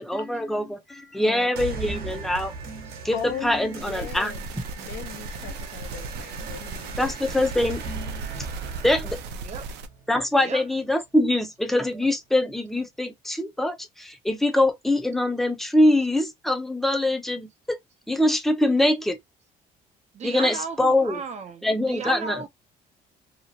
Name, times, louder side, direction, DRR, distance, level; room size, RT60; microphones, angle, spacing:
voice 1, 0.0-4.6 6.4-6.6 7.0-8.3 8.8-9.2 10.1-17.8 18.1-19.2 20.2-21.2 21.6-22.4, left 1 dB, ahead, 0.6 m, -24 dB
voice 2, 1.2-2.3 3.1-4.5 4.8-7.5, left 9 dB, 70° left, 0.8 m, -39 dB
sound 1, 1.6-10.6, right 4 dB, 65° right, 0.9 m, -38 dB
sound 2, 3.8-9.9, right 3 dB, 90° right, 0.5 m, -37 dB
voice 3, 9.4-9.7 10.4-10.6 20.1-22.5, right 5 dB, 40° right, 0.6 m, -35 dB
2.9 x 2.4 x 2.7 m
cardioid pair, 110°, 17 cm